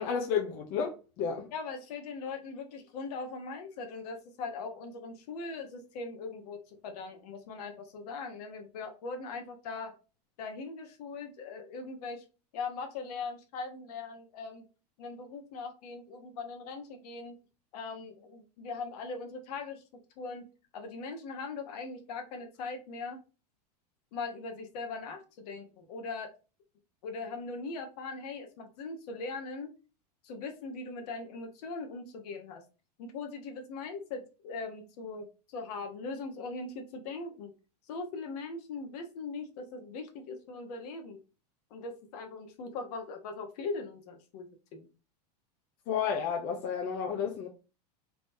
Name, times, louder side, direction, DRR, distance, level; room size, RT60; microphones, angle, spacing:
voice 1, 0.0-1.5 45.9-47.5, left 7 dB, 50° left, 0.7 m, -31 dB
voice 2, 1.5-9.9 10.4-12.2 12.5-14.6 15.0-17.3 17.7-19.8 20.2-20.4 20.7-23.2 24.1-26.3 27.0-29.7 30.2-32.6 33.0-37.5 37.9-41.2 41.7-44.4 44.7-44.9, left 4 dB, 65° left, 1.1 m, -40 dB
3.5 x 3.0 x 2.7 m
hypercardioid pair, 110°, 21 cm